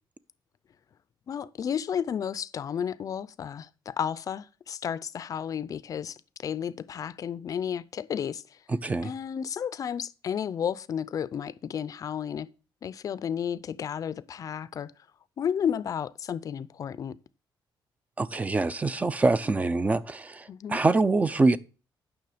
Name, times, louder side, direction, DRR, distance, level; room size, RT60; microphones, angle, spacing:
voice 1, 1.3-8.6 9.0-12.5 12.8-14.9 15.4-17.2 20.5-20.8, left 8 dB, 45° left, 0.5 m, -32 dB
voice 2, 8.7-9.1 18.2-21.6, right 3 dB, 20° right, 0.5 m, -25 dB
9.3 x 6.2 x 4.9 m
cardioid pair, 150°, 8 cm